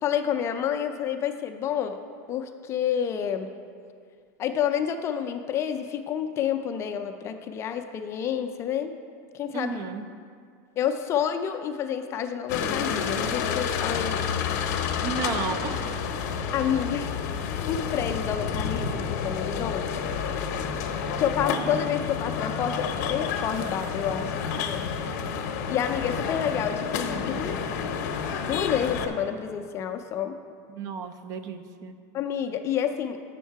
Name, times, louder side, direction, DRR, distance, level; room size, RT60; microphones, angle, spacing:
voice 1, 0.0-2.0 2.3-3.5 4.4-8.9 9.3-9.7 10.8-14.2 16.5-17.1 17.6-20.0 21.2-24.8 25.7-27.6 28.4-30.4 32.1-33.2, left 8 dB, 30° left, 7 dB, 0.4 m, -29 dB
voice 2, 9.5-10.1 15.0-16.0 30.7-32.0, right 5 dB, 35° right, 9 dB, 0.5 m, -33 dB
sound 1, 12.5-29.1, left 6 dB, 60° left, 0.7 m, -29 dB
8.2 x 6.4 x 4.6 m, 2.2 s
supercardioid pair, 145°, 9 cm